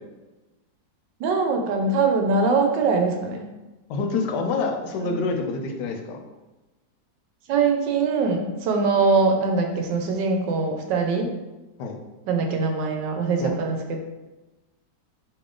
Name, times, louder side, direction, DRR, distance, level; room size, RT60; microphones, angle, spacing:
voice 1, 1.2-3.5 5.0-5.2 7.5-11.3 12.3-14.0, right 4 dB, 85° right, 3 dB, 1.3 m, -22 dB
voice 2, 3.9-6.2 11.8-12.0 13.4-13.6, left 3 dB, 80° left, 3 dB, 1.2 m, -27 dB
4.1 x 2.9 x 3.7 m, 1.1 s
omnidirectional pair, 1.9 m